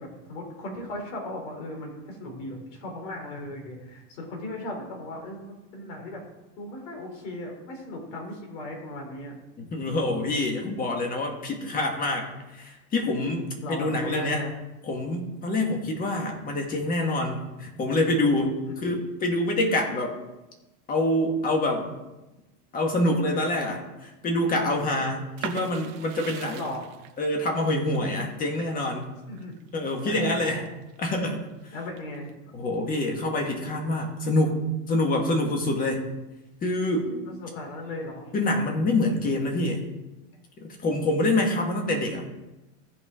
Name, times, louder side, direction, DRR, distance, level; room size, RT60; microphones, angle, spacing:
voice 1, 0.0-6.2 6.6-9.3 13.6-14.5 18.7-18.8 26.5-26.9 29.3-29.6 30.0-30.5 31.7-32.4 37.1-38.3, left 1 dB, 75° left, 0 dB, 3.7 m, -37 dB
voice 2, 9.6-12.3 12.5-14.4 14.8-20.2 20.9-21.9 22.7-26.6 27.2-29.1 29.7-30.6 31.0-31.4 32.5-34.6 34.9-36.0 36.6-37.1 38.3-39.9 40.6-42.2, left 1 dB, 20° left, 2 dB, 1.7 m, -26 dB
sound 1, 25.4-31.0 31.4-32.3, right 11 dB, 55° right, 0.9 m, -42 dB
15.5 x 5.3 x 3.7 m, 1.0 s
supercardioid pair, 155°, 38 cm